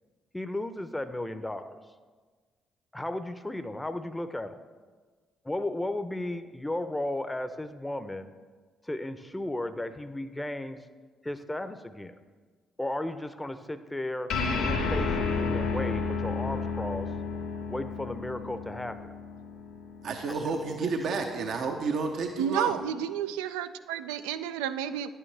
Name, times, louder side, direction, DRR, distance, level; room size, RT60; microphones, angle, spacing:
voice 1, 0.3-1.8 2.9-4.6 5.4-8.3 8.8-10.8 11.2-12.1 12.8-14.3 14.6-17.1 17.7-19.1 20.4-21.2, left 1 dB, 15° left, 10 dB, 0.6 m, -35 dB
sound 1, 14.3-21.1, left 4 dB, 75° left, 1.3 m, -32 dB
voice 2, 20.0-22.8, right 4 dB, 65° right, 4 dB, 0.7 m, -30 dB
voice 3, 22.4-25.1, right 9 dB, 85° right, 12 dB, 0.3 m, -31 dB
10.5 x 8.9 x 3.3 m, 1.4 s
hypercardioid pair, 50°, 0 cm